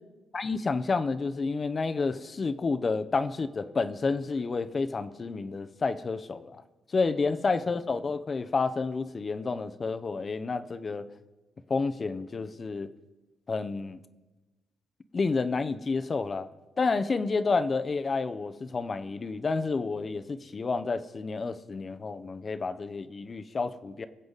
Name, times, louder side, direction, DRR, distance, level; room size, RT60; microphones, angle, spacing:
voice 1, 0.3-6.6 6.9-11.1 11.7-12.9 13.5-14.0 15.1-16.5 16.8-24.1, left 4 dB, 35° left, 11 dB, 0.7 m, -30 dB
23.0 x 7.8 x 4.0 m, 1.2 s
cardioid pair, 90°, 0 cm